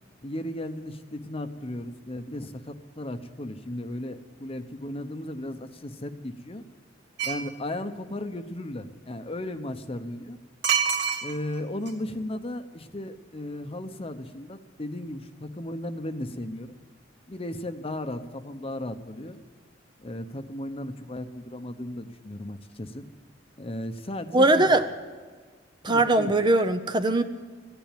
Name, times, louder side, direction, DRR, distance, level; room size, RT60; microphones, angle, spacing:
voice 1, 0.2-6.6 7.2-10.4 11.2-16.7 17.3-19.4 20.0-23.1 23.6-24.7 25.8-26.3, left 1 dB, 30° left, 9 dB, 0.9 m, -35 dB
sound 1, 7.2-7.5 10.6-11.6 11.9-12.0, right 7 dB, 65° right, 1.8 m, -25 dB
voice 2, 24.3-24.8 25.8-27.2, right 2 dB, 25° right, 9 dB, 0.7 m, -20 dB
15.0 x 10.5 x 9.1 m, 1.5 s
head